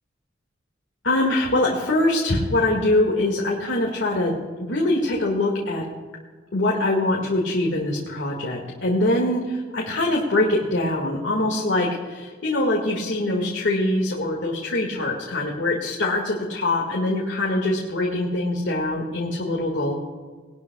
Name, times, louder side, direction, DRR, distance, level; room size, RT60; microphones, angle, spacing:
voice 1, 1.0-5.9 6.5-19.9, left 1 dB, 90° left, -2 dB, 1.9 m, -23 dB
20.0 x 12.5 x 2.3 m, 1.5 s
head